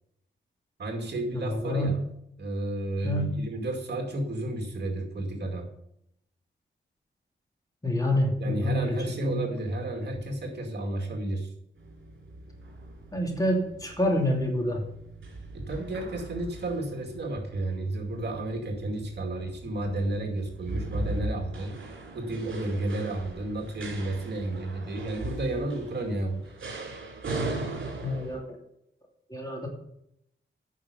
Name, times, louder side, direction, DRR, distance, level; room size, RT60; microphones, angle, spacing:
voice 1, 0.8-2.0 2.4-5.7 8.4-11.5 15.5-21.7 22.1-26.5, right 1 dB, 60° right, 2 dB, 2.4 m, -32 dB
voice 2, 1.3-2.0 3.0-3.4 7.8-9.5 13.1-14.8 28.0-28.6 29.3-29.7, left 1 dB, 20° left, 0 dB, 2.7 m, -27 dB
sound 1, 11.8-28.4, right 2 dB, 75° right, 3.1 m, -39 dB
9.5 x 6.5 x 6.8 m, 0.77 s
wide cardioid pair, 105°, 20 cm